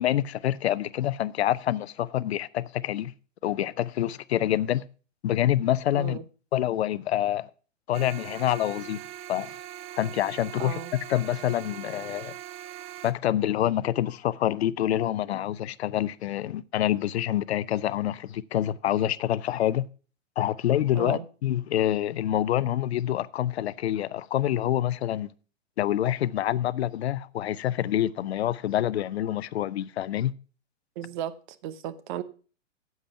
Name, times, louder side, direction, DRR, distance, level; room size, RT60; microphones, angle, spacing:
voice 1, 0.0-3.1 3.4-4.8 5.2-6.2 6.5-7.5 7.9-9.0 9.3-9.6 10.0-10.8 11.1-12.3 13.0-19.9 20.4-25.3 25.8-30.3, left 12 dB, 60° left, 0.7 m, -26 dB
voice 2, 5.9-6.2 10.6-10.9 20.9-21.3 31.0-31.4 31.6-32.2, right 11 dB, 40° right, 0.9 m, -35 dB
sound 1, 7.9-13.1, right 12 dB, 15° right, 0.5 m, -41 dB
10.0 x 7.9 x 5.8 m
figure-of-eight pair, 115°, 37 cm